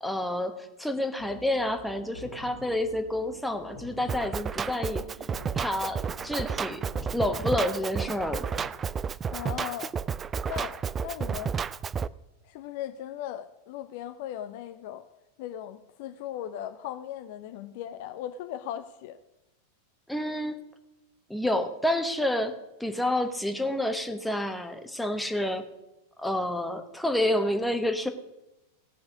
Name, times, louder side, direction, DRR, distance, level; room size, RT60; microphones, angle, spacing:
voice 1, 0.0-5.0 5.5-6.8 7.1-8.6 20.1-20.6 21.3-22.5 22.8-25.7 26.2-28.1, left 1 dB, 5° left, 1.0 m, -29 dB
sound 1, 1.2-8.7, left 2 dB, 90° right, 2.0 m, -47 dB
Drum kit, 4.1-12.1, right 6 dB, 20° right, 0.3 m, -32 dB
voice 2, 9.3-9.9 10.5-11.5 12.4-15.0 15.4-19.2, left 11 dB, 50° left, 0.6 m, -38 dB
16.5 x 6.1 x 6.2 m
figure-of-eight pair, 90°, 0 cm